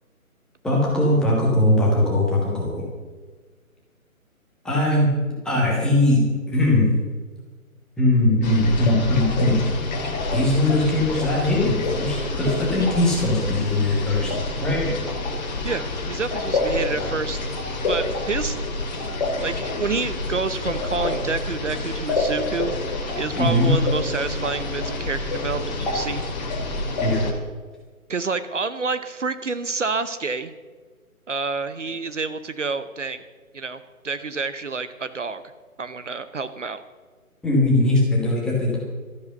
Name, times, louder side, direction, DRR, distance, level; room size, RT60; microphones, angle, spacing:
voice 1, 0.6-2.8 4.6-5.1 5.4-6.9 8.0-9.6 10.3-14.3 14.6-14.9 23.4-23.8 27.0-27.2 37.4-38.8, left 1 dB, ahead, -4 dB, 1.5 m, -20 dB
sound 1, 8.4-27.3, left 2 dB, 30° left, 2.2 m, -27 dB
voice 2, 15.6-17.5 17.9-18.9 19.4-22.8 23.1-26.2 28.1-30.5 31.3-33.2 33.5-35.4 35.8-36.8, right 4 dB, 55° right, 12 dB, 0.9 m, -28 dB
13.0 x 10.5 x 6.7 m, 1.4 s
figure-of-eight pair, 145°, 43 cm